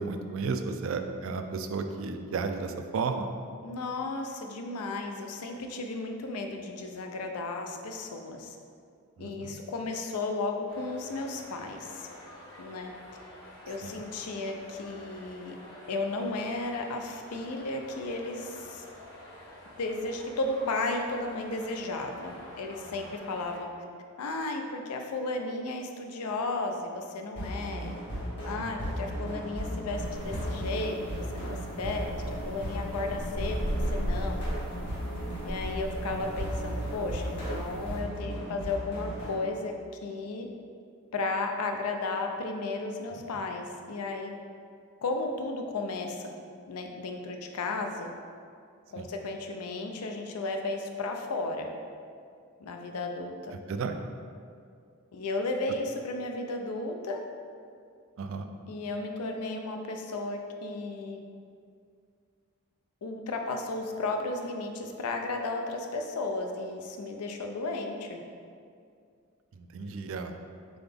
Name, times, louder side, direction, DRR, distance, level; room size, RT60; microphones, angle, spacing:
voice 1, 0.0-3.3 9.2-9.6 13.8-14.0 22.9-23.0 28.6-28.8 32.8-33.3 43.1-43.2 49.0-49.1 53.7-54.0 58.2-58.5 69.6-70.3, right 4 dB, 60° right, 7 dB, 0.3 m, -34 dB
voice 2, 3.6-8.6 9.2-12.1 12.6-12.9 13.7-15.6 15.9-18.8 19.8-23.7 24.2-28.0 28.4-32.1 32.5-34.4 35.4-39.7 40.0-40.5 41.1-44.3 45.0-46.3 46.7-48.1 48.9-51.7 52.6-53.5 55.1-57.2 58.7-61.2 63.0-68.2, left 2 dB, 90° left, 4 dB, 0.5 m, -34 dB
sound 1, 10.7-23.6, left 1 dB, 70° left, 1.3 m, -49 dB
sound 2, 27.4-39.3, equal, 50° left, 1.2 m, -35 dB
sound 3, 29.9-38.0, equal, 5° left, 0.5 m, -38 dB
3.9 x 3.8 x 3.4 m, 2.3 s
head